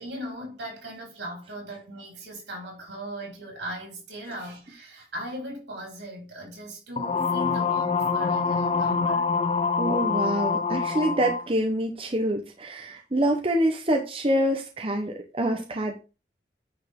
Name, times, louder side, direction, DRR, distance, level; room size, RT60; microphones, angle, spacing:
voice 1, 0.0-9.3, equal, 85° right, 4.8 m, -38 dB
sound 1, 7.0-11.5, left 5 dB, 30° left, 0.5 m, -25 dB
voice 2, 9.8-16.0, right 1 dB, 30° right, 1.0 m, -26 dB
9.5 x 5.5 x 3.8 m
head